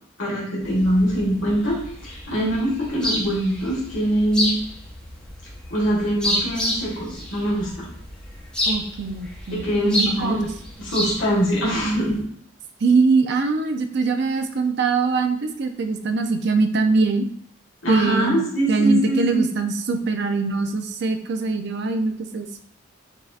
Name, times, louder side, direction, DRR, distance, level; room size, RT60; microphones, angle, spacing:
voice 1, 0.2-1.8 2.1-4.5 5.7-7.9 9.5-10.5 10.8-12.2 17.8-19.5, equal, 70° left, -5 dB, 1.6 m, -23 dB
sound 1, 0.6-12.2, equal, 5° left, 0.8 m, -30 dB
voice 2, 8.7-10.4 12.8-17.2 17.9-22.5, right 4 dB, 60° right, 7 dB, 0.5 m, -22 dB
7.4 x 2.7 x 2.4 m, 0.62 s
head